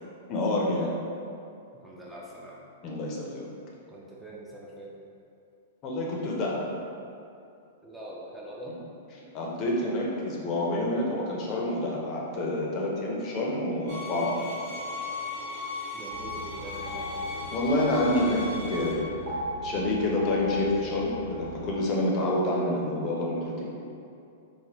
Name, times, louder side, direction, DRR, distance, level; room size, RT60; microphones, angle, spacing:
voice 1, 0.3-0.9 2.8-3.5 5.8-6.7 9.3-14.5 17.5-23.7, left 1 dB, 40° left, -3 dB, 0.6 m, -28 dB
voice 2, 1.8-2.6 3.9-4.9 7.8-8.8 15.9-17.1 23.9-24.0, right 1 dB, 10° right, -5 dB, 0.5 m, -43 dB
sound 1, 13.9-18.9, left 3 dB, 65° right, 0.8 m, -37 dB
sound 2, 16.1-21.7, left 1 dB, 85° right, 1.0 m, -38 dB
3.3 x 2.1 x 2.9 m, 2.5 s
hypercardioid pair, 105°, 0 cm